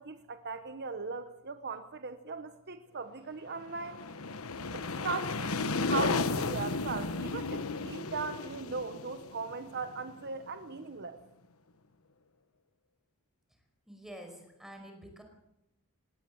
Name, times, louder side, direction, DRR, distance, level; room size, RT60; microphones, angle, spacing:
voice 1, 0.0-4.0 4.7-11.2, right 4 dB, 50° right, 9 dB, 1.0 m, -39 dB
sound 1, 3.6-10.3, left 3 dB, 70° left, 1.2 m, -34 dB
voice 2, 13.9-15.2, equal, ahead, 4 dB, 5.1 m, -48 dB
18.5 x 18.5 x 7.9 m, 0.85 s
head